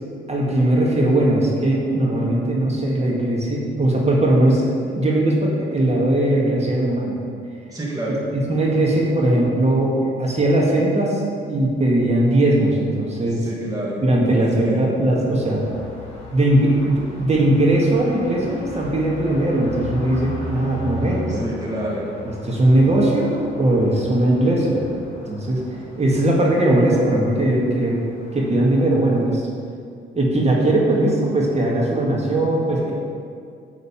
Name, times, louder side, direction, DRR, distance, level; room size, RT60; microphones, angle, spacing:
voice 1, 0.3-7.2 8.3-11.2 11.5-13.5 14.0-15.6 16.3-21.4 22.3-24.9 25.3-25.6 26.0-28.0 28.3-29.4 30.2-32.9, right 1 dB, 35° right, -3 dB, 1.8 m, -19 dB
voice 2, 7.7-8.2 13.4-14.9 21.3-22.1, right 1 dB, 15° right, -5 dB, 1.7 m, -28 dB
sound 1, 15.1-29.2, left 1 dB, 30° left, 2.1 m, -37 dB
10.0 x 3.9 x 7.2 m, 2.3 s
cardioid pair, 90°, 20 cm